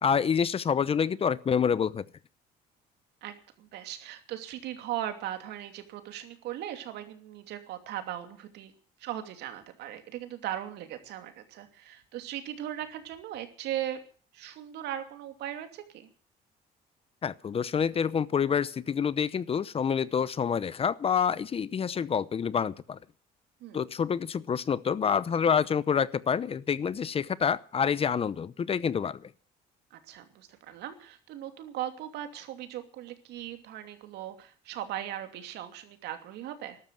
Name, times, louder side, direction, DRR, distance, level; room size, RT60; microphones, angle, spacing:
voice 1, 0.0-2.0 17.2-23.0 23.7-29.3, left 7 dB, 35° left, 19 dB, 0.8 m, -27 dB
voice 2, 3.2-8.7 9.0-14.0 14.3-16.1 23.6-23.8 29.9-36.8, right 12 dB, 80° right, 7 dB, 2.7 m, -38 dB
13.5 x 12.5 x 7.5 m, 0.41 s
cardioid pair, 110°, 17 cm